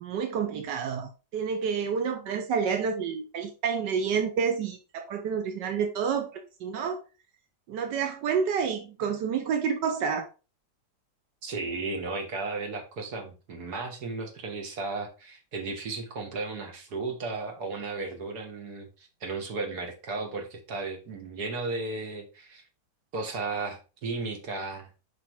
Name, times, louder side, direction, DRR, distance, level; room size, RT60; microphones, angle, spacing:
voice 1, 0.0-7.0 7.7-10.2, right 6 dB, 90° right, 1.6 m, -29 dB
voice 2, 11.4-22.6 23.1-24.9, right 3 dB, 65° right, 2.1 m, -35 dB
5.5 x 5.3 x 4.6 m
omnidirectional pair, 1.8 m